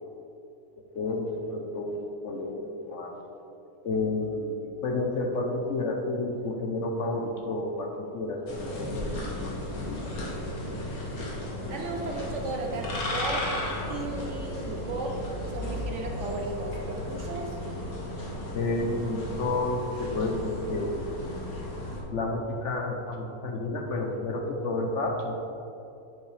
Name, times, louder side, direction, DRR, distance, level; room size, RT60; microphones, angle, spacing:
voice 1, 0.9-3.4 3.8-9.5 9.9-10.2 18.5-21.2 22.1-25.5, left 2 dB, 60° left, 1 dB, 1.1 m, -31 dB
sound 1, 8.5-22.0, left 1 dB, 80° left, 1.9 m, -34 dB
voice 2, 11.7-13.5 13.9-15.2 15.5-17.6, right 2 dB, 60° right, 1 dB, 1.1 m, -35 dB
8.1 x 7.2 x 3.4 m, 2.8 s
omnidirectional pair, 1.5 m